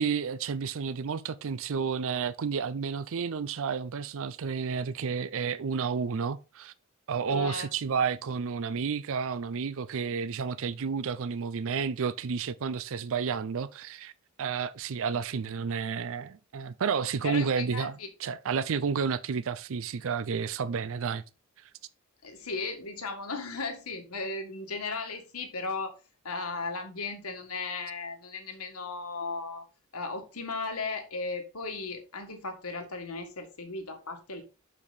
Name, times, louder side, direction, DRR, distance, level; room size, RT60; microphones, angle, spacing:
voice 1, 0.0-6.7 7.1-14.1 14.4-17.9 18.2-21.2, right 6 dB, 65° right, 0.5 m, -31 dB
voice 2, 7.3-7.7 17.2-18.1 22.2-25.9 26.2-29.6 29.9-34.4, left 3 dB, 75° left, 1.8 m, -36 dB
6.6 x 6.0 x 4.0 m
head